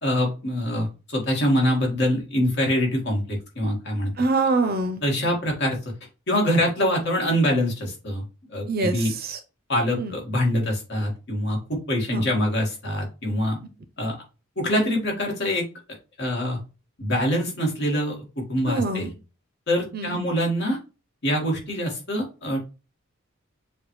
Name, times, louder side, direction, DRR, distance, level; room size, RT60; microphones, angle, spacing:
voice 1, 0.0-4.1 5.0-5.9 6.3-8.2 8.5-9.1 9.7-13.6 14.0-14.2 14.5-15.6 16.2-16.6 17.0-18.1 18.5-19.1 19.7-20.8 21.2-22.7, equal, 55° left, 0 dB, 1.7 m, -24 dB
voice 2, 4.2-5.0 8.7-9.4 10.0-10.1 12.1-12.2 18.7-19.1 19.9-20.2, right 3 dB, 45° right, 7 dB, 0.6 m, -25 dB
6.9 x 2.4 x 3.0 m, 0.31 s
head